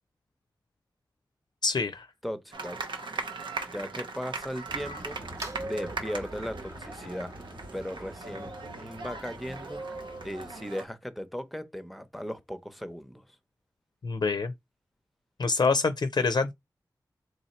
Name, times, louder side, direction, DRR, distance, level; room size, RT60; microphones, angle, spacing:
voice 1, 1.6-2.1 14.0-14.5 15.4-16.5, left 4 dB, 60° left, 0.4 m, -26 dB
voice 2, 2.2-2.8 3.7-5.2 5.6-7.3 7.7-9.8 10.2-13.3, equal, ahead, 0.7 m, -37 dB
sound 1, 2.5-10.8, right 3 dB, 90° right, 0.7 m, -39 dB
sound 2, 4.7-10.6, right 1 dB, 40° right, 0.9 m, -45 dB
3.1 x 2.8 x 4.2 m
cardioid pair, 45°, 8 cm